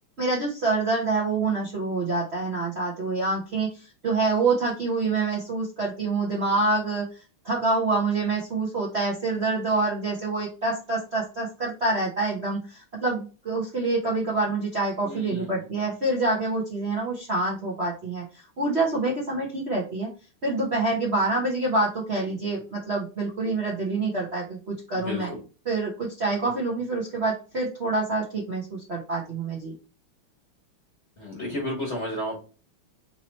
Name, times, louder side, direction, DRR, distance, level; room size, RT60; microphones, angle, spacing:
voice 1, 0.2-20.1 20.4-25.3 25.6-29.7, right 3 dB, 45° right, -4 dB, 0.9 m, -26 dB
voice 2, 15.0-15.6 24.9-25.4 31.2-32.3, left 1 dB, 35° left, -1 dB, 1.3 m, -32 dB
4.4 x 2.9 x 4.1 m, 0.34 s
omnidirectional pair, 2.4 m